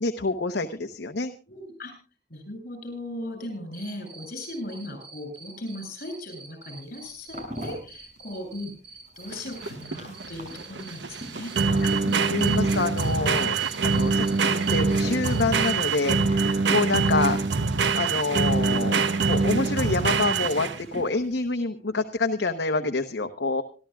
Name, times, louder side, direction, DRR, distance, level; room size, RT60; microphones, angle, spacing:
voice 1, 0.0-1.3 12.3-13.6 13.8-17.4 18.0-23.6, left 3 dB, 70° left, 6 dB, 0.9 m, -27 dB
voice 2, 1.5-1.9 2.3-12.6 17.1-17.2, left 1 dB, 55° left, 7 dB, 7.7 m, -38 dB
Cricket, 3.7-15.7, right 3 dB, 70° right, 7.8 m, -46 dB
sound 1, 6.8-21.5, right 1 dB, 50° right, 6.8 m, -46 dB
sound 2, 9.3-20.9, right 4 dB, 85° right, 0.9 m, -24 dB
26.5 x 12.5 x 2.4 m, 0.36 s
head